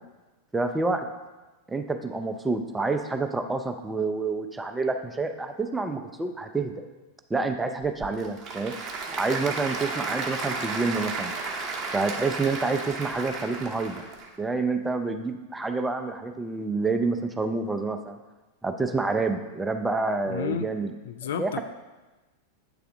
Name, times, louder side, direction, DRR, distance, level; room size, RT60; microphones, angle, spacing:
voice 1, 0.5-1.1 1.7-6.7 7.3-8.7 9.1-11.3 11.9-14.0 14.4-18.2 18.6-20.9 21.4-21.6, right 3 dB, 10° right, 6 dB, 0.4 m, -28 dB
Applause / Crowd, 7.8-14.3, right 4 dB, 30° right, 0.8 m, -33 dB
voice 2, 20.3-20.7 21.0-21.6, left 7 dB, 60° left, 9 dB, 0.3 m, -31 dB
8.1 x 3.3 x 3.6 m, 1.2 s
figure-of-eight pair, 90°, 0 cm